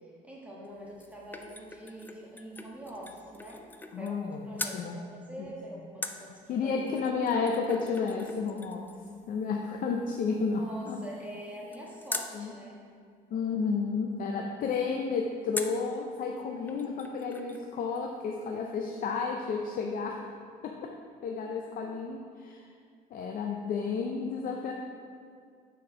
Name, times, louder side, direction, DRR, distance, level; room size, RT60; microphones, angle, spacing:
voice 1, 0.0-3.6 4.0-6.9 10.6-12.8, equal, 10° right, -5 dB, 1.4 m, -45 dB
sound 1, 0.6-4.3 4.6-4.8 6.0-12.4 15.5-15.9 16.4-16.5 16.7-17.7 17.9-18.0, left 2 dB, 10° left, 0.4 m, -43 dB
voice 2, 3.9-4.5 4.7-4.9 5.4-5.5 6.5-8.9 9.3-11.0 12.3-12.5 13.3-20.2 20.6-20.9 21.2-22.7 23.1-24.7, left 5 dB, 55° left, 2 dB, 0.6 m, -32 dB
6.2 x 4.5 x 5.6 m, 2.2 s
cardioid pair, 110°, 17 cm